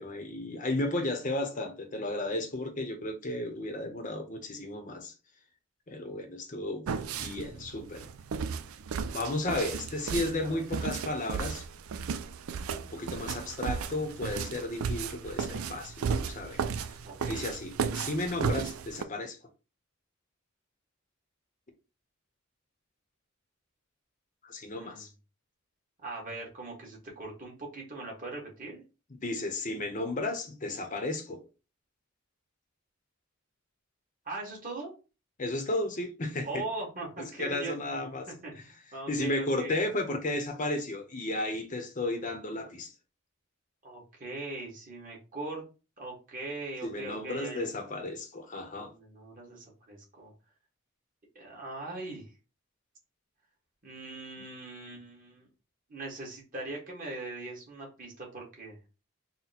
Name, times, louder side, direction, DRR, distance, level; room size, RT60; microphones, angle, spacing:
voice 1, 0.0-5.1 5.9-6.9 7.2-8.1 9.1-11.7 12.9-16.9 17.2-19.4 24.4-25.1 29.2-31.4 35.4-36.6 37.4-38.3 38.5-38.6 39.1-42.9 46.8-48.9, left 2 dB, 40° left, 0.8 m, -34 dB
sound 1, 6.9-19.0, right 6 dB, 85° right, 0.4 m, -34 dB
voice 2, 17.0-17.4 24.7-25.1 26.0-28.8 34.2-34.9 36.4-37.7 38.3-39.8 43.8-45.6 46.0-47.7 48.9-50.3 51.3-52.3 53.8-55.5 55.9-58.8, right 2 dB, 40° right, 1.7 m, -40 dB
4.1 x 2.2 x 4.2 m
head